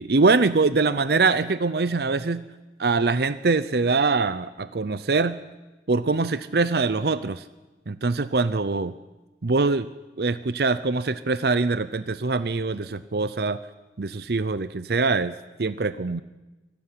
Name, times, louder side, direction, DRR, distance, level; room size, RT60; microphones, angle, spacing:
voice 1, 0.0-2.4 2.8-5.4 5.9-7.4 7.9-8.9 9.4-9.9 10.2-13.6 14.0-16.2, right 3 dB, 60° right, 14 dB, 0.7 m, -23 dB
24.0 x 13.0 x 9.8 m, 1.1 s
head